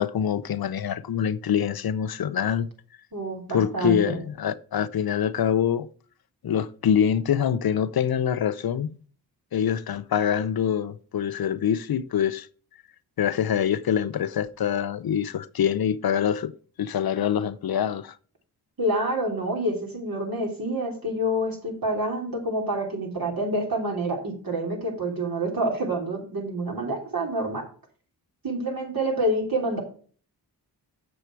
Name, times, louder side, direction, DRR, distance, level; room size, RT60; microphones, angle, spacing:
voice 1, 0.0-2.7 3.5-5.9 6.4-9.0 9.5-12.5 13.2-16.5 16.8-18.2, left 9 dB, 60° left, 0.6 m, -25 dB
voice 2, 3.1-4.2 18.8-27.6 28.4-29.8, right 1 dB, 55° right, 3.4 m, -27 dB
7.0 x 6.9 x 4.6 m
cardioid pair, 45°, 40 cm